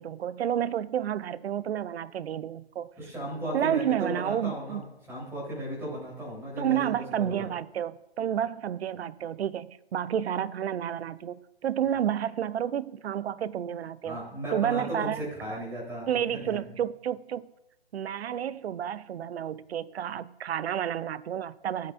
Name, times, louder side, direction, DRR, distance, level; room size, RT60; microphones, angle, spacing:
voice 1, 0.0-2.9 3.5-4.8 6.6-14.2 14.5-15.3 16.1-17.5 17.9-21.9, right 10 dB, 80° right, 0.6 m, -30 dB
voice 2, 3.0-7.5 14.0-16.6, right 1 dB, 10° right, 3.7 m, -36 dB
14.5 x 8.8 x 2.6 m
hypercardioid pair, 150°, 31 cm